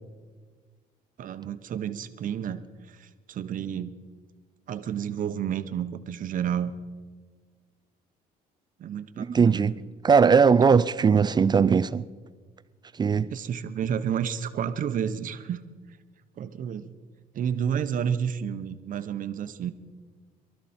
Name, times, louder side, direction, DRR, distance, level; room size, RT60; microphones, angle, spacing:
voice 1, 1.2-2.6 2.9-3.9 4.7-6.7 8.8-9.6 13.3-15.6 16.4-16.9 17.3-19.7, right 8 dB, 50° right, 0.9 m, -30 dB
voice 2, 9.2-9.8 10.0-12.1 12.9-13.3, right 6 dB, 25° right, 0.4 m, -19 dB
23.5 x 12.5 x 4.4 m
cardioid pair, 110°, 17 cm